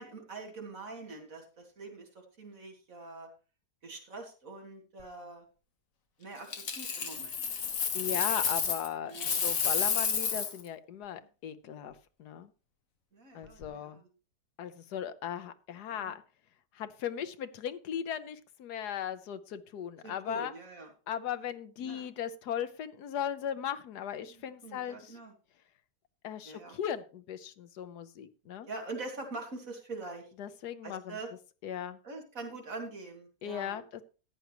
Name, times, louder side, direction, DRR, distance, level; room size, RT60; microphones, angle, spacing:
voice 1, 0.0-2.1 2.4-3.3 3.8-5.4 6.2-7.4 9.1-9.5 11.1-11.3 13.1-14.1 15.9-16.1 20.0-20.9 21.8-22.1 24.3-25.3 26.5-26.8 28.7-30.3 30.8-31.3 32.0-33.8, right 3 dB, 55° right, 1 dB, 2.8 m, -44 dB
Coin (dropping), 6.5-8.9 9.1-10.6 13.4-13.6, left 6 dB, 60° left, 1.6 m, -31 dB
voice 2, 7.9-12.5 13.3-14.0 14.6-16.2 16.7-20.5 21.1-25.2 26.2-28.7 30.4-31.2 31.6-32.0 33.4-34.0, left 9 dB, 90° left, 12 dB, 1.4 m, -37 dB
14.0 x 9.3 x 3.0 m, 0.34 s
omnidirectional pair, 1.7 m